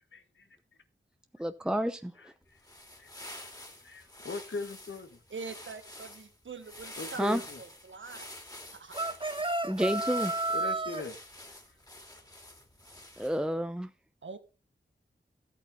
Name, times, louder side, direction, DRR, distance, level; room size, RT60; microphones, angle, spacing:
voice 1, 0.1-0.5 2.2-2.6 3.0-3.1 3.4-5.2 7.0-7.6 10.5-11.2 11.5-11.6, left 4 dB, 70° left, 1.5 m, -41 dB
voice 2, 1.4-2.1 7.2-7.4 9.6-10.3 13.2-13.9, equal, 5° right, 0.8 m, -30 dB
sound 1, 2.5-13.5, left 1 dB, 20° left, 2.9 m, -48 dB
voice 3, 5.3-7.3 7.6-8.3 8.7-8.9 14.2-14.4, right 4 dB, 75° right, 1.3 m, -43 dB
sound 2, 8.9-11.0, right 2 dB, 25° right, 1.4 m, -31 dB
14.0 x 8.5 x 3.7 m
cardioid pair, 50°, 20 cm